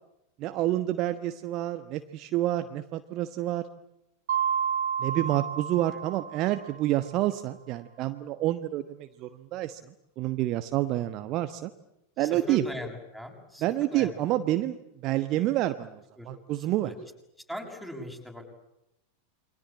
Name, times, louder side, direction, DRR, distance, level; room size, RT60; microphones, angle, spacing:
voice 1, 0.4-3.7 5.0-9.8 10.2-11.7 12.2-12.6 13.6-16.9, right 14 dB, 40° right, 10 dB, 1.2 m, -28 dB
Mallet percussion, 4.3-6.9, right 8 dB, 60° right, 1.3 m, -30 dB
voice 2, 12.2-13.6 13.9-14.2 16.2-16.3 16.8-16.9 17.5-18.6, left 1 dB, 5° left, 3 dB, 6.8 m, -39 dB
28.5 x 24.0 x 8.6 m, 0.85 s
figure-of-eight pair, 90°, 0 cm